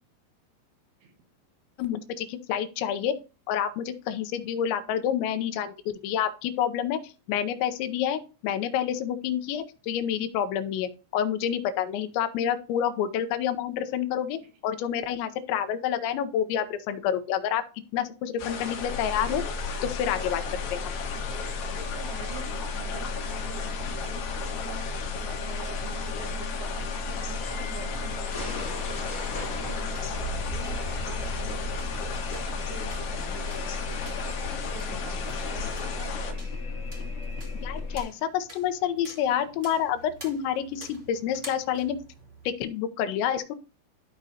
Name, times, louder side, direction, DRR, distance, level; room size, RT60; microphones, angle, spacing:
voice 1, 1.8-3.1 3.5-17.6 17.9-19.4 19.8-20.4 20.7-20.8 37.6-42.0 42.5-43.5, left 9 dB, 85° left, 8 dB, 3.0 m, -28 dB
sound 1, 18.4-36.3, left 5 dB, 65° left, 3.3 m, -35 dB
sound 2, 18.8-38.0, left 3 dB, 35° left, 1.0 m, -35 dB
voice 2, 21.6-36.5, right 5 dB, 75° right, 4 dB, 3.7 m, -46 dB
sound 3, 27.7-42.5, right 1 dB, 25° right, 1.0 m, -50 dB
13.0 x 5.1 x 2.8 m, 0.33 s
omnidirectional pair, 5.2 m